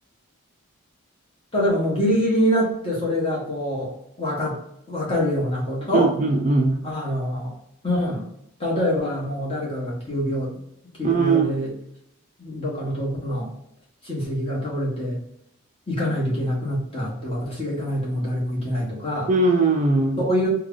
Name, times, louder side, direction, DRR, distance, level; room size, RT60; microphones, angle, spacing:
voice 1, 1.5-3.9 4.2-4.6 4.9-6.1 6.8-7.5 7.8-8.2 8.6-10.5 11.0-11.7 12.4-13.5 14.0-15.2 15.9-19.3 20.2-20.5, equal, 25° left, -5 dB, 1.2 m, -25 dB
voice 2, 5.9-6.8 11.0-11.6 19.3-20.3, right 3 dB, 35° right, 2 dB, 0.3 m, -20 dB
3.2 x 2.3 x 3.7 m, 0.76 s
head